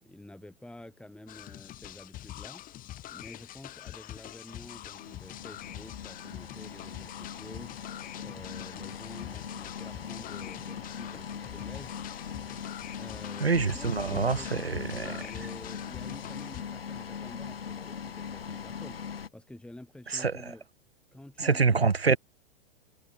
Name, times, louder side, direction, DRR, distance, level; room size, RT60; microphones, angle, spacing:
voice 1, 0.0-2.6 3.1-7.7 8.2-12.0 13.0-19.0 19.3-20.6 21.1-21.8, left 1 dB, 5° left, 4.4 m, -49 dB
sound 1, 1.3-16.6, left 14 dB, 30° left, 2.8 m, -45 dB
sound 2, 4.5-19.3, left 7 dB, 70° left, 6.2 m, -41 dB
voice 2, 13.4-15.1 20.1-20.4 21.4-22.2, right 5 dB, 85° right, 1.2 m, -26 dB
figure-of-eight pair, 105°, 30 cm